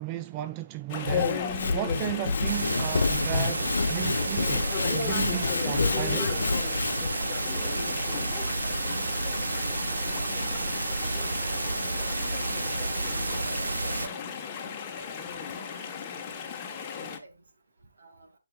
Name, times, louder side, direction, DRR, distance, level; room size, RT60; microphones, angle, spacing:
voice 1, 0.0-1.4 1.7-6.4, right 14 dB, 20° right, 0.3 m, -34 dB
Sawing / Wood, 0.9-7.1, left 4 dB, 70° left, 0.3 m, -29 dB
Chatter / Stream, 0.9-17.2, left 6 dB, 20° left, 1.2 m, -35 dB
sound 1, 2.4-14.1, right 3 dB, 80° right, 0.7 m, -31 dB
voice 2, 7.2-10.6 11.4-12.3 12.6-13.1 13.4-14.1 14.4-14.7 15.1-15.3 15.7-16.0 16.3-16.4 16.7-17.3 18.0-18.3, right 2 dB, 60° right, 2.3 m, -48 dB
10.5 x 5.2 x 2.4 m
figure-of-eight pair, 155°, 0 cm